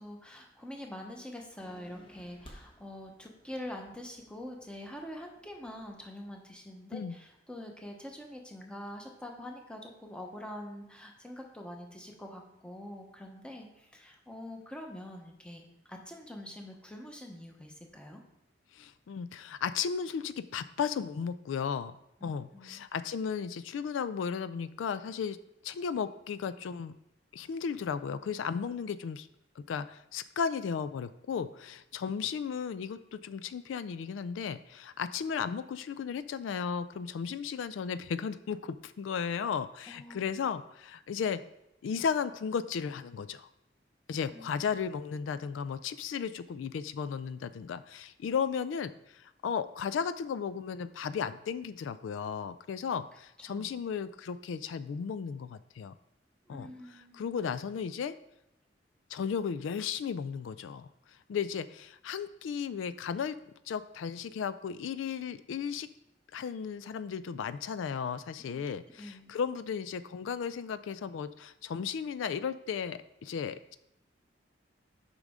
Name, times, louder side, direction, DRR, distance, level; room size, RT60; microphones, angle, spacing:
voice 1, 0.0-18.2 22.5-22.8 39.9-40.2 44.3-44.5 53.5-53.7 56.5-57.3 69.0-69.3, left 1 dB, 5° left, 1 dB, 0.9 m, -45 dB
sound 1, 1.6-6.4, equal, 25° left, 1.0 m, -57 dB
voice 2, 18.7-22.0 22.2-25.4 25.6-26.9 27.3-29.3 29.6-41.4 41.8-43.5 44.1-55.9 56.5-56.7 57.1-58.1 59.1-60.9 61.3-63.4 63.7-65.9 66.3-73.8, left 6 dB, 90° left, 13 dB, 0.3 m, -35 dB
8.2 x 5.3 x 3.6 m, 0.84 s
head